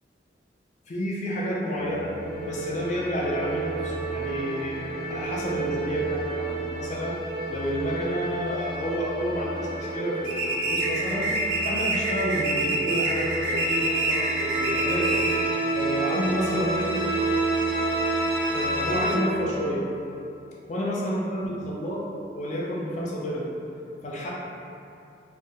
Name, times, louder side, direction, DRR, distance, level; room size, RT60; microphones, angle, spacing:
voice 1, 0.9-7.2 7.5-11.3 11.6-15.3 15.7-17.1 18.5-19.8 20.7-22.0 22.3-23.5 24.0-24.3, equal, 40° left, -4 dB, 0.4 m, -30 dB
sound 1, 1.8-19.1, right 2 dB, 55° left, 1.1 m, -30 dB
sound 2, 10.3-15.5, right 1 dB, 70° right, 0.4 m, -27 dB
3.3 x 2.2 x 2.6 m, 2.7 s
head